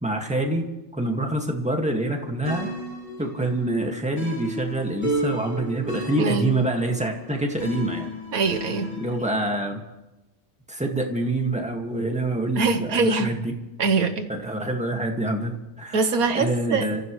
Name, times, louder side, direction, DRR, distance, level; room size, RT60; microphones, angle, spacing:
voice 1, 0.0-0.6 0.9-2.7 3.2-8.1 9.0-9.8 10.7-13.5 14.3-16.0 16.3-17.0, right 1 dB, 5° right, 2 dB, 1.8 m, -26 dB
sound 1, 2.5-9.3, right 1 dB, 30° left, 4.8 m, -33 dB
voice 2, 6.2-6.5 8.3-9.0 12.6-13.3 13.8-14.3 15.9-16.9, right 4 dB, 85° right, 7 dB, 1.6 m, -23 dB
28.0 x 15.0 x 3.2 m, 1.0 s
omnidirectional pair, 1.5 m